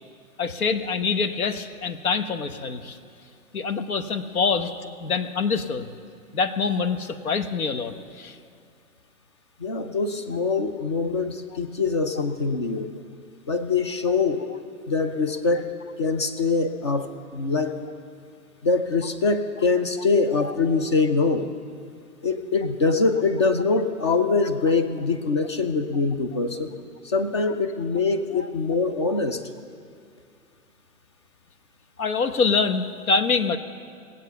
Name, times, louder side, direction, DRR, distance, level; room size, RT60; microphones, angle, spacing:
voice 1, 0.4-3.0 3.5-4.7 5.0-5.9 6.3-8.4 20.4-20.5 32.0-33.6, left 5 dB, 70° left, 11 dB, 1.1 m, -25 dB
voice 2, 9.6-12.9 13.5-14.5 14.9-15.7 16.0-17.7 18.6-21.5 22.2-26.7 27.0-29.4, left 4 dB, 20° left, 9 dB, 0.4 m, -23 dB
19.5 x 8.2 x 6.9 m, 2.4 s
figure-of-eight pair, 125°, 44 cm